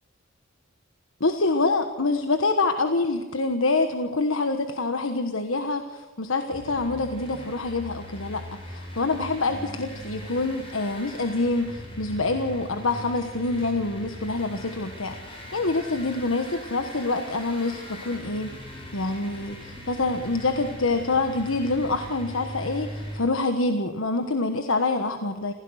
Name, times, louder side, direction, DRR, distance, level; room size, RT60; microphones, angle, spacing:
voice 1, 1.2-18.6 18.9-25.5, left 3 dB, 90° left, 7 dB, 1.3 m, -26 dB
sound 1, 6.5-23.2, equal, 30° left, 6.6 m, -40 dB
26.0 x 16.5 x 6.4 m, 1.2 s
head